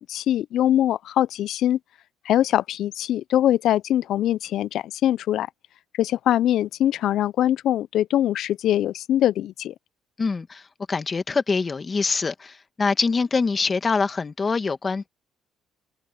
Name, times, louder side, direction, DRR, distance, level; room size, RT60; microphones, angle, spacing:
voice 1, 0.0-1.8 2.2-5.5 6.0-9.7, left 12 dB, 70° left, 0.3 m, -22 dB
voice 2, 10.2-10.6 10.9-15.1, left 4 dB, 30° left, 1.5 m, -24 dB
cardioid pair, 100°, 0 cm